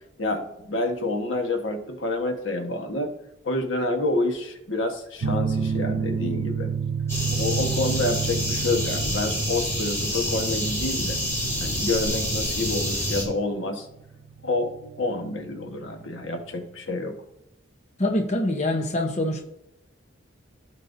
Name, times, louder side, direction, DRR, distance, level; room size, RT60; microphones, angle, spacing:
voice 1, 0.2-3.1 3.4-6.7 7.3-11.2 11.6-13.9 14.4-17.2, left 2 dB, 80° left, 4 dB, 1.4 m, -28 dB
sound 1, 5.2-16.4, right 6 dB, 90° right, 0.6 m, -31 dB
sound 2, 7.1-13.2, equal, 15° left, 2.5 m, -28 dB
voice 2, 18.0-19.4, left 1 dB, 35° left, 2 dB, 1.0 m, -24 dB
15.5 x 5.5 x 2.7 m, 0.87 s
head